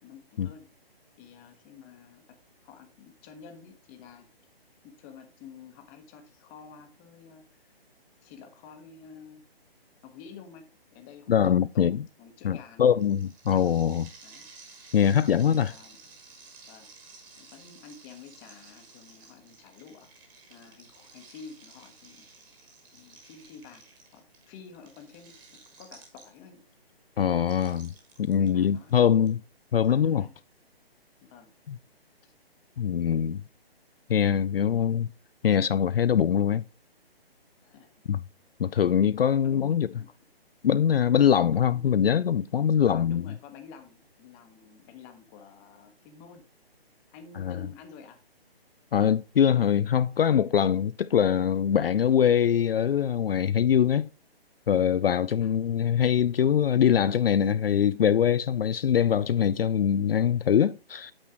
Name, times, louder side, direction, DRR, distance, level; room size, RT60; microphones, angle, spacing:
voice 1, 0.0-0.7 1.2-2.4 2.6-4.3 4.8-7.5 8.2-9.4 10.0-11.4 11.7-12.9 13.5-13.7 14.2-14.5 15.4-16.1 16.7-16.9 17.4-20.1 20.5-22.3 22.9-23.8 24.1-26.6 28.3-29.3 29.8-30.3 31.2-31.5 32.2-32.3 37.6-37.9 39.4-40.1 42.9-46.4 47.1-48.2 55.4-55.6, left 6 dB, 15° left, 1.1 m, -49 dB
voice 2, 11.3-12.0 12.4-14.1 14.9-15.7 27.2-27.9 28.2-29.4 29.7-30.3 31.7-31.8 32.8-33.4 34.1-35.1 35.4-36.6 38.1-38.2 38.6-39.9 40.6-43.2 47.4-47.6 48.9-54.1 54.7-61.1, left 8 dB, 65° left, 0.5 m, -23 dB
sound 1, 13.0-26.6 27.4-29.3, right 4 dB, 15° right, 1.6 m, -53 dB
8.8 x 6.4 x 3.6 m
figure-of-eight pair, 145°, 31 cm